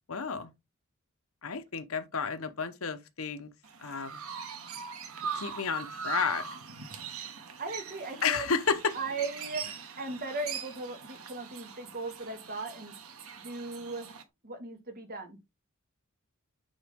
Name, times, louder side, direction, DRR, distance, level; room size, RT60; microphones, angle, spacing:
voice 1, 0.1-0.5 1.4-3.5 3.8-4.2 5.3-6.4 8.2-8.9, left 5 dB, 75° left, 0.9 m, -31 dB
Chirp tweet, 3.6-14.2, right 6 dB, 90° right, 1.3 m, -41 dB
voice 2, 7.6-8.5 8.9-9.6 10.0-12.9 13.4-14.1 14.4-15.4, right 3 dB, 45° right, 2.0 m, -37 dB
9.2 x 3.9 x 3.6 m
head